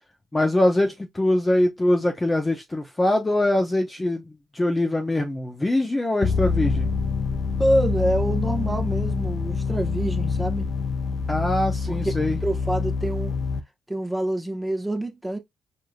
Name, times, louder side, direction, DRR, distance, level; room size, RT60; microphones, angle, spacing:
voice 1, 0.3-4.2 4.5-6.9 11.3-12.4, left 1 dB, 15° left, 0.7 m, -23 dB
sound 1, 6.2-13.6, left 5 dB, 55° left, 0.5 m, -26 dB
voice 2, 7.6-10.7 11.9-12.0 12.4-13.4 13.9-15.4, right 1 dB, 10° right, 1.1 m, -26 dB
4.8 x 2.7 x 2.3 m
cardioid pair, 90°, 0 cm